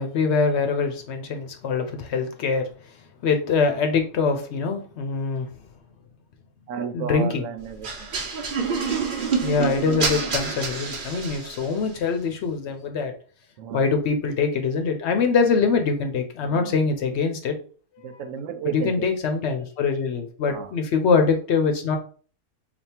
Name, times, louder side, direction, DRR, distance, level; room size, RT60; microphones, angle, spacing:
voice 1, 0.0-2.7 3.2-5.5 6.9-7.4 9.4-13.1 13.7-17.5 18.6-22.0, left 5 dB, 65° left, 5 dB, 0.8 m, -23 dB
voice 2, 6.7-8.1 13.6-13.9 16.4-16.8 18.0-19.0 20.4-20.7, right 7 dB, 85° right, 8 dB, 1.0 m, -33 dB
sound 1, 7.8-11.8, right 5 dB, 45° right, 0.9 m, -27 dB
3.4 x 2.4 x 4.3 m, 0.41 s
omnidirectional pair, 1.3 m